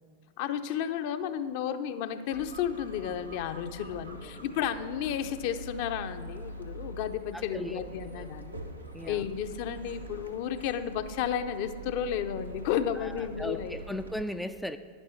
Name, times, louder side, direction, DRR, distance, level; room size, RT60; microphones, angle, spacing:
voice 1, 0.4-8.6 9.0-14.0, left 9 dB, 50° left, 9 dB, 0.6 m, -32 dB
sound 1, 2.3-14.2, right 2 dB, 90° right, 1.0 m, -44 dB
voice 2, 7.3-8.3 8.9-9.2 13.0-14.8, equal, ahead, 9 dB, 0.3 m, -38 dB
11.0 x 10.0 x 4.4 m, 2.1 s
figure-of-eight pair, 90°, 0 cm